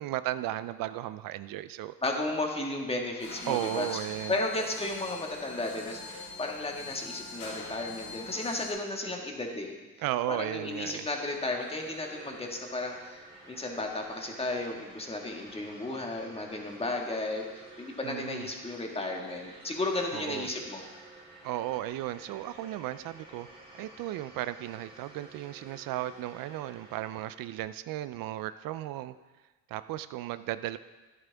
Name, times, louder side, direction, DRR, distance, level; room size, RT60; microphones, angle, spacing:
voice 1, 0.0-1.9 3.5-4.4 10.0-11.1 18.0-18.5 20.1-20.5 21.4-23.5 23.7-29.1 29.7-30.8, right 14 dB, 75° right, 14 dB, 0.5 m, -35 dB
voice 2, 2.0-4.0 4.3-9.8 10.3-13.2 13.5-20.8, left 2 dB, 15° left, 1 dB, 1.6 m, -34 dB
sound 1, 3.2-8.7, left 4 dB, 80° left, 3.6 m, -43 dB
sound 2, 10.6-27.6, right 2 dB, 15° right, 3.1 m, -52 dB
12.0 x 10.5 x 3.4 m, 1.2 s
cardioid pair, 115°, 34 cm